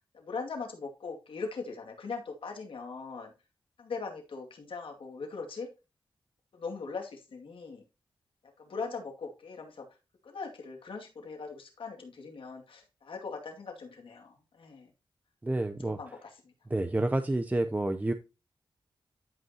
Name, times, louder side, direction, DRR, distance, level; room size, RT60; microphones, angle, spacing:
voice 1, 0.1-3.3 3.8-5.7 6.5-7.8 8.6-9.9 10.2-14.9 15.8-16.5, left 4 dB, 85° left, 2 dB, 2.2 m, -40 dB
voice 2, 15.4-16.0 16.7-18.1, right 2 dB, 20° right, 8 dB, 0.6 m, -29 dB
12.5 x 5.4 x 2.9 m, 0.29 s
cardioid pair, 70°, 9 cm